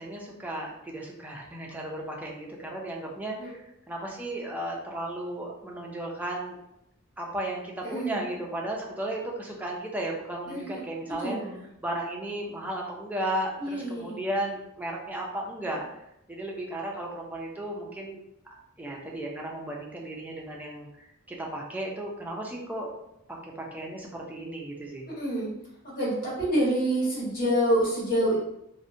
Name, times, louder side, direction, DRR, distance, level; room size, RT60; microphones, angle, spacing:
voice 1, 0.0-6.6 7.2-11.4 11.8-15.8 16.3-18.2 18.8-20.9 21.3-22.9 23.3-25.1, right 1 dB, 10° right, -2 dB, 0.4 m, -34 dB
voice 2, 7.8-8.2 10.5-10.8 11.1-11.7 13.6-14.2 25.1-25.5 25.8-28.4, right 1 dB, 45° left, -8 dB, 1.3 m, -27 dB
2.6 x 2.1 x 2.5 m, 0.81 s
head